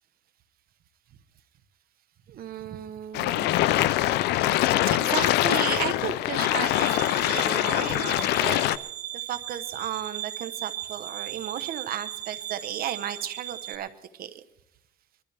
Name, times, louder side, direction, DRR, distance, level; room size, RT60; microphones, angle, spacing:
voice 1, 2.3-3.5 4.4-8.7 9.3-13.9 14.2-14.4, right 10 dB, 60° right, 11 dB, 1.0 m, -34 dB
sound 1, 3.1-8.8, left 15 dB, 80° left, 0.5 m, -24 dB
sound 2, 6.6-13.7, right 12 dB, 45° right, 2.5 m, -37 dB
22.5 x 13.0 x 3.4 m, 0.81 s
cardioid pair, 110°, 17 cm